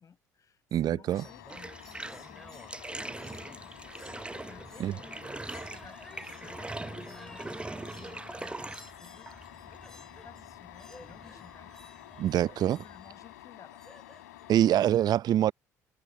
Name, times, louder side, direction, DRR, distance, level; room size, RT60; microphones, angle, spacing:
voice 1, 0.0-2.7 3.0-3.7 4.4-5.2 5.5-7.6 8.0-13.8, left 7 dB, 40° left, 5.5 m, -55 dB
voice 2, 0.7-1.2 4.8-4.9 12.2-12.8 14.5-15.5, right 11 dB, 50° right, 0.8 m, -25 dB
sound 1, 1.1-14.9, left 17 dB, 75° left, 3.4 m, -50 dB
sound 2, 1.1-14.8, left 1 dB, 5° left, 4.6 m, -55 dB
Bathtub (filling or washing), 1.4-13.1, right 2 dB, 10° right, 0.8 m, -43 dB
figure-of-eight pair, 50°, 9 cm